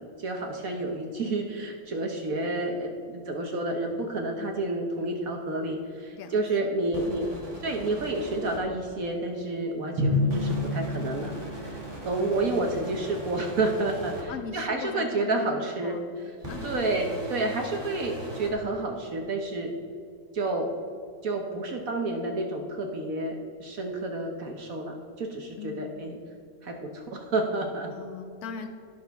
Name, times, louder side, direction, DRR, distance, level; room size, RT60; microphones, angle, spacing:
voice 1, 0.0-7.3 7.6-11.3 11.6-16.0 16.6-19.7 20.3-20.7 21.2-26.2 26.6-27.9, right 2 dB, 55° right, 3 dB, 1.1 m, -30 dB
voice 2, 6.1-6.7 7.1-7.9 12.1-12.8 14.3-16.1 16.5-16.8 25.6-26.0 27.9-28.7, left 6 dB, 60° left, 8 dB, 1.0 m, -41 dB
sound 1, 6.9-8.6 10.3-14.2 16.4-18.5, right 1 dB, 10° right, 2.3 m, -39 dB
Drum, 10.0-12.2, left 2 dB, 70° right, 2.2 m, -28 dB
17.0 x 6.1 x 3.5 m, 2.5 s
omnidirectional pair, 2.3 m